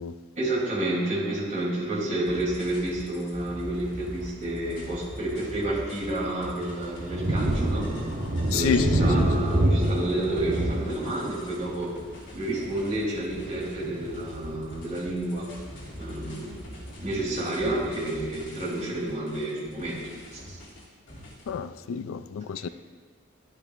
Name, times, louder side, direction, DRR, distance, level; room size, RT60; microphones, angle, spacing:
voice 1, 0.4-7.9 8.5-8.7 9.0-11.9 12.3-15.5 16.0-16.6 17.0-20.0 20.5-20.6, right 1 dB, 35° right, -6 dB, 3.0 m, -30 dB
sound 1, 2.3-21.6, equal, 60° left, 2.6 m, -44 dB
Thunder, 3.4-3.7 4.3-4.4 4.9-15.4, right 1 dB, 55° right, 1.2 m, -28 dB
voice 2, 8.5-9.5 21.5-22.7, left 6 dB, 80° left, 12 dB, 0.4 m, -29 dB
11.5 x 11.0 x 2.5 m, 1.5 s
head